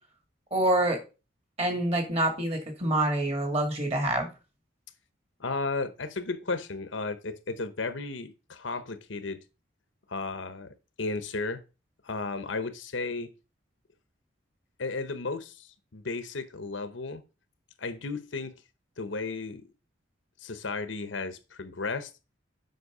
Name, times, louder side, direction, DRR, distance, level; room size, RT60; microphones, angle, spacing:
voice 1, 0.5-1.0 1.6-4.3, right 1 dB, 30° right, 2.3 m, -26 dB
voice 2, 5.4-9.4 10.1-11.6 12.0-13.3 14.8-17.2 17.8-18.5 19.0-19.7 20.4-22.1, left 3 dB, 75° left, 0.9 m, -34 dB
8.1 x 5.8 x 4.9 m
head